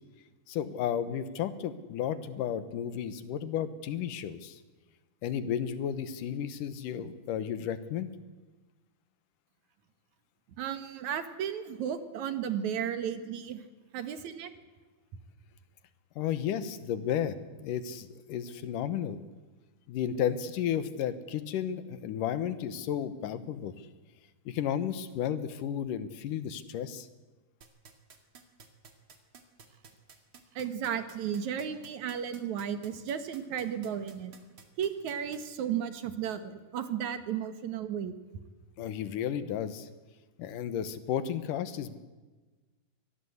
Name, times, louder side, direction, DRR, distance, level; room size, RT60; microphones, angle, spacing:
voice 1, 0.5-4.6 5.2-8.1 16.2-17.4 17.6-19.2 19.9-23.7 24.5-27.1 38.8-39.9 40.4-42.0, left 9 dB, 85° left, 12 dB, 2.8 m, -33 dB
voice 2, 10.6-13.6 13.9-14.5 30.5-34.3 34.8-38.1, right 8 dB, 70° right, 9 dB, 2.7 m, -34 dB
sound 1, 27.6-35.4, right 6 dB, 45° right, 2.7 m, -52 dB
24.5 x 18.5 x 8.1 m, 1.3 s
omnidirectional pair, 3.6 m